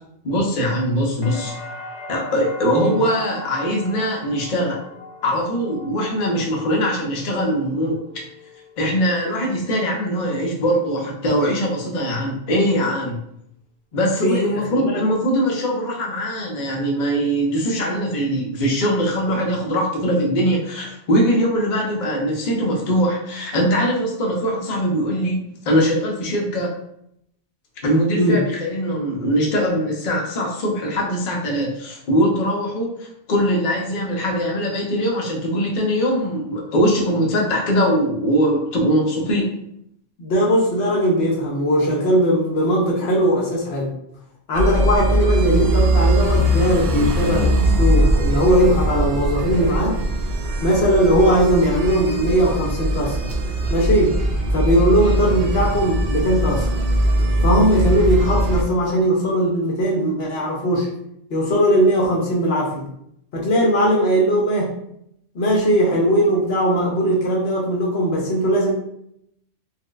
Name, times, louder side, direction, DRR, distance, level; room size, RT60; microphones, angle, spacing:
voice 1, 0.2-1.5 2.1-4.8 5.2-8.0 8.8-13.2 13.9-26.7 27.8-39.5, equal, 50° left, -1 dB, 0.7 m, -21 dB
sound 1, 1.2-9.1 9.5-10.2, left 1 dB, 90° left, 1.0 m, -39 dB
voice 2, 14.2-15.0 28.1-28.4 40.2-43.9 44.5-50.0 50.6-53.2 53.7-54.2 54.5-56.7 57.4-60.9 61.3-62.8 63.3-64.7 65.3-68.7, equal, 65° left, -2 dB, 1.0 m, -19 dB
sound 2, 44.5-58.6, right 1 dB, 65° right, 0.7 m, -20 dB
4.4 x 2.0 x 2.4 m, 0.74 s
omnidirectional pair, 1.2 m